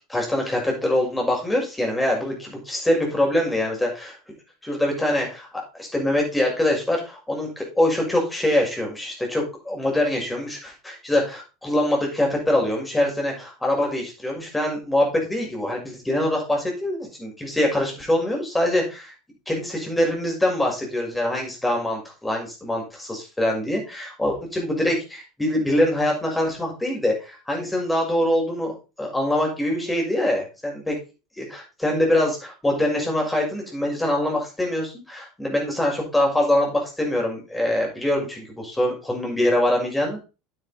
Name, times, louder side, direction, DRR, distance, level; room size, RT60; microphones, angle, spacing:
voice 1, 0.1-4.2 4.6-19.1 19.5-30.9 31.4-40.2, left 1 dB, 10° left, -1 dB, 6.3 m, -24 dB
9.4 x 8.9 x 4.6 m, 0.31 s
figure-of-eight pair, 75°, 0 cm